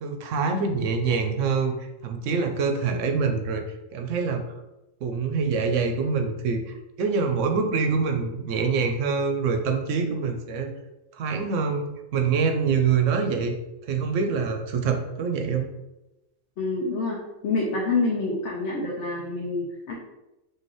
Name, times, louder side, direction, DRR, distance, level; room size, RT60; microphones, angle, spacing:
voice 1, 0.0-3.6 3.9-4.4 5.0-10.7 11.1-13.5 13.8-15.7, right 5 dB, 85° right, 5 dB, 0.9 m, -25 dB
voice 2, 16.6-17.2 17.4-19.9, left 3 dB, 70° left, -2 dB, 1.0 m, -27 dB
4.7 x 2.7 x 3.0 m, 0.96 s
omnidirectional pair, 1.3 m